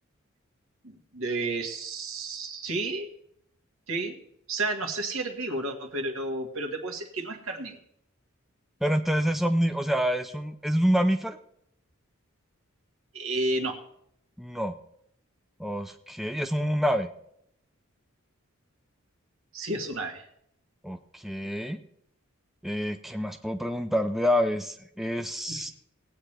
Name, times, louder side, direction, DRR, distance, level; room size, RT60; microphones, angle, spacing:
voice 1, 0.8-3.1 3.9-4.1 4.5-7.8 13.1-13.8 19.5-20.2 25.5-25.7, right 2 dB, 70° right, 3 dB, 1.7 m, -31 dB
voice 2, 8.8-11.4 14.4-14.7 15.6-17.1 20.8-21.8 22.6-25.7, equal, ahead, 6 dB, 0.5 m, -27 dB
19.0 x 8.9 x 3.3 m, 0.72 s
head